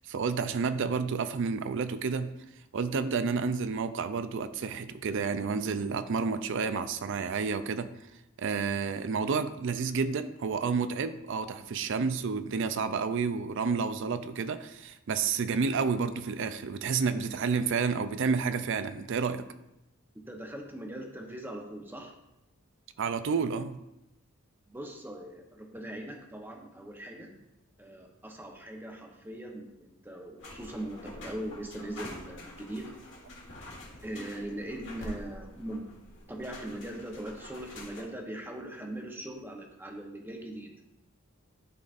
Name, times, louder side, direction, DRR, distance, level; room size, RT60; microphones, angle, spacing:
voice 1, 0.1-2.3 2.7-7.9 8.4-19.5 23.0-23.8, right 5 dB, 60° right, 11 dB, 0.4 m, -30 dB
voice 2, 20.3-22.1 23.3-23.4 24.7-27.4 27.8-32.8 34.0-35.9 36.3-40.7, right 1 dB, 10° right, 1 dB, 0.8 m, -40 dB
Chris' window noise, 30.4-38.0, left 1 dB, 60° left, 1.6 m, -46 dB
12.0 x 4.0 x 2.5 m, 0.89 s
head